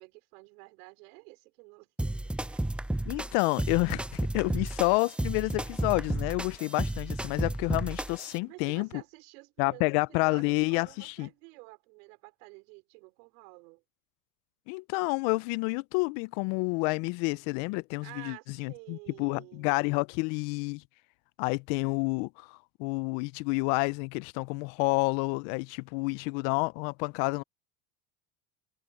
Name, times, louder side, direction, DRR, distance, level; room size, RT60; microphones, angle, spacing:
voice 1, 0.0-2.6 8.4-13.8 18.0-19.7, right 28 dB, 80° right, 4.9 m, -51 dB
sound 1, 2.0-8.4, right 1 dB, 5° right, 0.4 m, -33 dB
voice 2, 3.1-8.9 9.6-11.3 14.7-20.8 21.4-27.4, left 28 dB, 70° left, 0.7 m, -29 dB
supercardioid pair, 110°, 45 cm